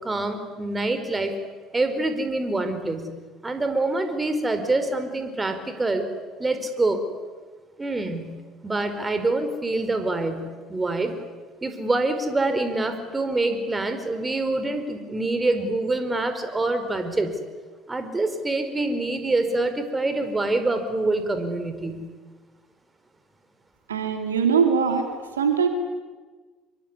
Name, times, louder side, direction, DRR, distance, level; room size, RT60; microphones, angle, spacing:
voice 1, 0.0-1.3 1.7-3.2 3.4-6.1 6.4-7.0 7.8-11.2 11.6-17.4 17.9-22.1, right 2 dB, 20° right, 9 dB, 4.8 m, -26 dB
voice 2, 23.9-25.1 25.4-25.7, right 6 dB, 85° right, 6 dB, 2.5 m, -21 dB
25.5 x 23.0 x 9.8 m, 1.4 s
hypercardioid pair, 60°, 0 cm